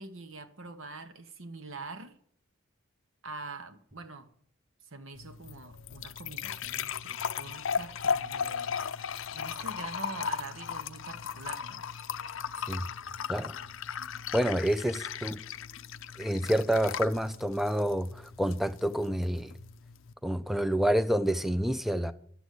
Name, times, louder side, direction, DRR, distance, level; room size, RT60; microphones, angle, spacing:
voice 1, 0.0-2.2 3.2-4.3 4.9-8.8 9.3-11.9, right 3 dB, 65° right, 1.2 m, -44 dB
sound 1, 5.2-20.1, left 7 dB, 65° left, 0.5 m, -37 dB
voice 2, 14.3-15.4 16.2-19.5 20.2-22.1, equal, ahead, 0.4 m, -28 dB
11.5 x 8.0 x 8.2 m
head